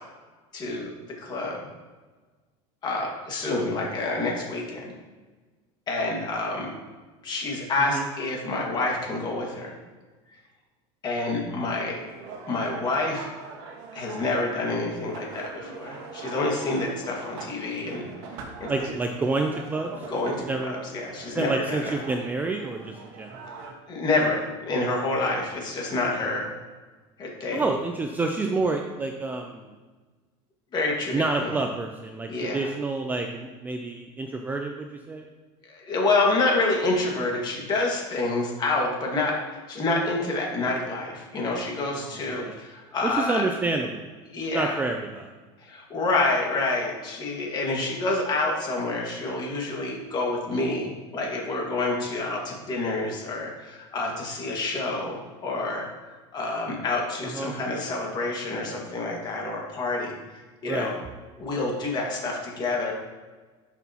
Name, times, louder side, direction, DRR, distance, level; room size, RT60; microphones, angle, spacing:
voice 1, 0.5-0.9 1.2-1.6 2.8-4.9 5.9-6.7 7.2-9.7 11.0-12.0 12.5-13.3 13.9-18.1 18.6-18.7 20.1-20.4 20.6-21.9 23.9-26.5 27.2-27.6 30.7-31.5 32.3-32.6 35.6-43.5 44.3-44.8 45.6-60.1 60.6-60.9 61.4-62.9, left 2 dB, 30° left, -1 dB, 1.8 m, -28 dB
sound 1, 11.9-23.7, right 4 dB, 70° right, 1.5 m, -42 dB
voice 2, 18.7-20.1 20.5-20.7 21.3-23.3 27.5-29.7 31.1-35.3 41.9-42.6 43.0-44.1 44.5-45.3 57.3-57.5 60.6-60.9, right 3 dB, 10° right, 3 dB, 0.4 m, -28 dB
10.5 x 6.1 x 2.9 m, 1.3 s
supercardioid pair, 150°, 15 cm